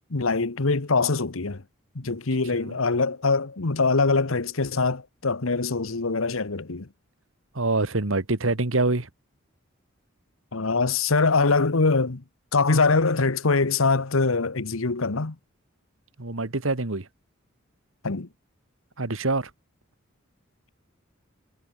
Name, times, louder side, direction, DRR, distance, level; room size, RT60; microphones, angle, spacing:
voice 1, 0.0-1.6 1.9-6.9 10.5-12.2 12.5-15.3 18.0-18.3, left 3 dB, 80° left, 1.2 m, -23 dB
voice 2, 7.5-9.1 16.2-17.1 19.0-19.5, right 2 dB, 75° right, 1.8 m, -25 dB
head